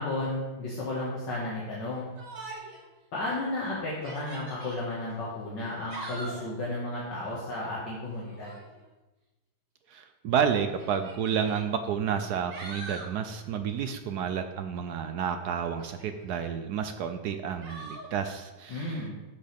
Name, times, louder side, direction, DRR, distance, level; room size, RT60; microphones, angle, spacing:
voice 1, 0.0-2.1 3.1-8.6 18.7-19.1, left 2 dB, 65° left, -6 dB, 2.3 m, -33 dB
Yell, 2.2-2.8 3.3-3.4 3.9-4.8 5.7-6.5 8.2-8.7 9.8-9.9 10.8-11.6 12.2-13.1 15.8-16.4 17.6-18.1, right 2 dB, 45° right, 1.7 m, -42 dB
voice 2, 9.9-19.0, right 7 dB, 70° right, 8 dB, 1.0 m, -30 dB
12.5 x 7.8 x 3.5 m, 1.1 s
omnidirectional pair, 2.2 m